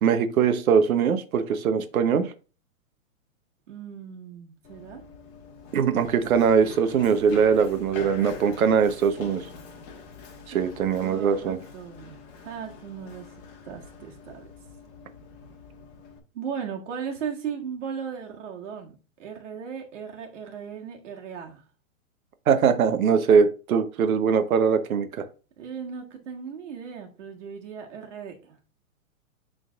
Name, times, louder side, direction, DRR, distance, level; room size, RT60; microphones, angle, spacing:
voice 1, 0.0-2.3 5.7-9.5 10.5-11.6 22.5-25.2, right 6 dB, 80° right, 8 dB, 1.0 m, -21 dB
voice 2, 3.7-5.0 10.5-10.6 11.0-13.3 13.6-14.4 16.3-21.6 25.6-28.6, right 7 dB, 60° right, 1 dB, 1.7 m, -37 dB
Run, 4.6-16.2, left 5 dB, 40° left, 1.4 m, -44 dB
11.0 x 3.9 x 2.4 m, 0.34 s
hypercardioid pair, 150°, 42 cm